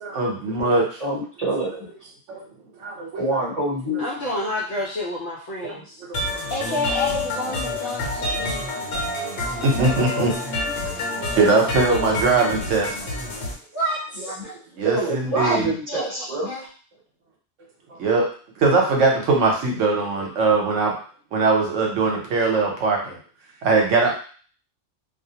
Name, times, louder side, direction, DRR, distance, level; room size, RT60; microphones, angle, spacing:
voice 1, 0.0-1.0 2.3-2.4 2.8-3.2 3.9-4.0 5.6-5.7 6.0-6.4 8.5-10.4 10.8-12.9 14.7-15.7 17.9-18.3 18.6-21.0 21.3-23.1 23.6-24.1, right 3 dB, 80° right, 0 dB, 1.0 m, -21 dB
voice 2, 1.0-1.9 3.1-4.0 14.2-14.3 14.8-16.5, right 2 dB, 35° right, -6 dB, 0.8 m, -26 dB
voice 3, 4.0-6.0 6.5-8.6 13.7-14.5 15.3-16.7, left 1 dB, 70° left, -5 dB, 0.9 m, -29 dB
sound 1, 6.1-13.5, left 2 dB, 90° left, 1.1 m, -28 dB
2.4 x 2.0 x 2.7 m, 0.42 s
omnidirectional pair, 1.3 m